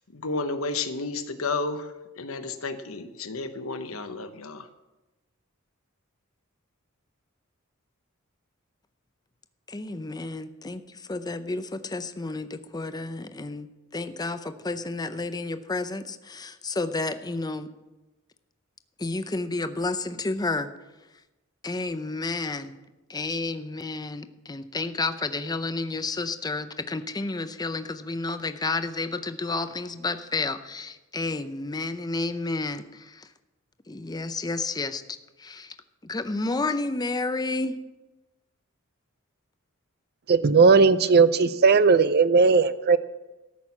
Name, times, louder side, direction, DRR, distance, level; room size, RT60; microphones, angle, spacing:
voice 1, 0.1-4.7, left 3 dB, 70° left, 8 dB, 1.0 m, -32 dB
voice 2, 9.7-10.8 11.1-13.7 13.9-17.7 19.0-20.7 21.6-22.8 23.1-33.3 33.9-35.0 35.4-35.7 36.0-37.8, left 3 dB, 20° left, 10 dB, 0.6 m, -31 dB
voice 3, 40.3-43.0, right 4 dB, 50° right, 14 dB, 0.5 m, -17 dB
13.5 x 6.2 x 7.2 m, 1.1 s
head